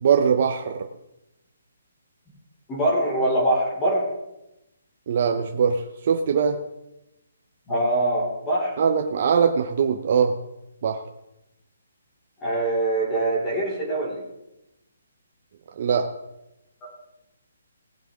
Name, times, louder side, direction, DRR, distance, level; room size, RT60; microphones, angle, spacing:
voice 1, 0.0-0.8 5.1-5.8 6.1-6.6 8.8-10.3 10.8-11.0 15.8-16.1, right 6 dB, 45° right, 4 dB, 0.8 m, -21 dB
voice 2, 2.7-4.0 7.7-8.7 12.4-14.2, right 1 dB, 15° left, -4 dB, 3.4 m, -23 dB
18.5 x 7.5 x 3.7 m, 0.91 s
hypercardioid pair, 165°, 0 cm